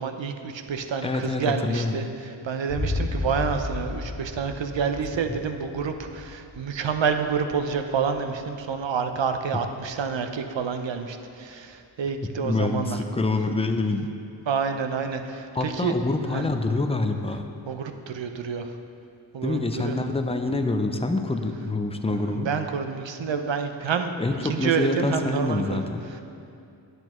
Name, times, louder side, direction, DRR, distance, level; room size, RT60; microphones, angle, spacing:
voice 1, 0.0-13.0 14.5-15.9 16.3-16.4 17.7-18.7 19.3-20.0 22.1-24.1 24.4-25.8 26.1-26.2, right 6 dB, 65° right, 7 dB, 0.7 m, -28 dB
voice 2, 1.0-2.0 12.4-14.1 15.5-17.4 19.4-22.5 24.2-26.0, left 2 dB, 15° left, 6 dB, 0.4 m, -26 dB
sound 1, 2.7-10.1, left 2 dB, 40° left, 1.8 m, -34 dB
10.5 x 7.9 x 3.0 m, 2.6 s
wide cardioid pair, 95°, 48 cm